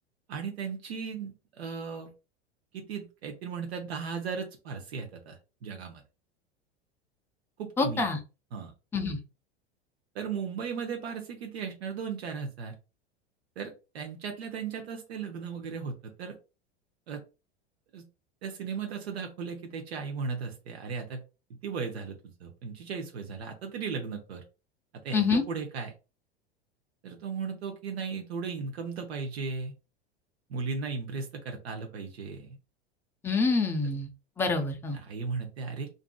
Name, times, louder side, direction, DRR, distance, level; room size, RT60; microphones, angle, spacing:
voice 1, 0.3-2.1 2.7-6.0 7.6-8.1 8.5-8.7 10.1-12.7 13.6-16.4 17.1-17.2 17.9-18.0 18.4-21.2 21.5-24.4 25.0-25.9 27.0-29.7 30.5-32.6 34.9-35.9, right 5 dB, 70° right, 4 dB, 0.7 m, -36 dB
voice 2, 7.8-8.2 8.9-9.2 25.1-25.4 33.2-34.1 34.4-35.0, left 4 dB, 5° left, 5 dB, 0.4 m, -26 dB
2.6 x 2.4 x 2.3 m, 0.30 s
figure-of-eight pair, 85°, 33 cm